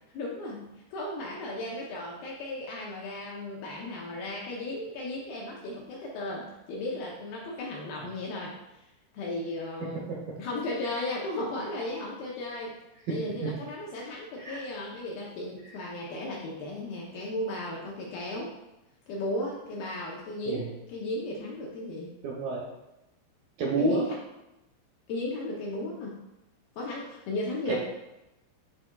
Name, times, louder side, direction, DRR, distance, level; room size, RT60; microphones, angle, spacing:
voice 1, 0.1-8.9 9.1-10.0 10.4-12.7 13.1-18.5 19.1-22.1 23.8-24.1 25.1-26.1 26.8-27.8, left 1 dB, 75° left, -3 dB, 2.3 m, -35 dB
voice 2, 9.8-10.4 13.1-13.5 14.4-14.6 20.5-20.7 22.2-22.6 23.6-24.0 27.7-27.8, right 3 dB, 75° right, -3 dB, 2.2 m, -30 dB
10.5 x 4.1 x 2.3 m, 0.93 s
omnidirectional pair, 5.0 m